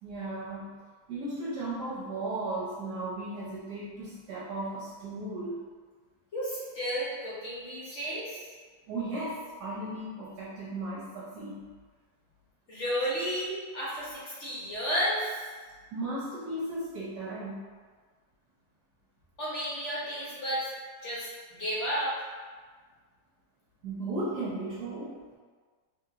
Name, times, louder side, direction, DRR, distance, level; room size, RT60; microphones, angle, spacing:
voice 1, 0.0-0.7 1.1-5.6 8.9-11.6 15.9-17.6 23.8-25.2, right 2 dB, 75° right, -9 dB, 1.2 m, -35 dB
voice 2, 6.3-8.4 12.7-15.4 19.4-20.7 21.0-22.2, equal, 55° left, -8 dB, 0.9 m, -32 dB
2.8 x 2.8 x 2.4 m, 1.5 s
omnidirectional pair, 1.8 m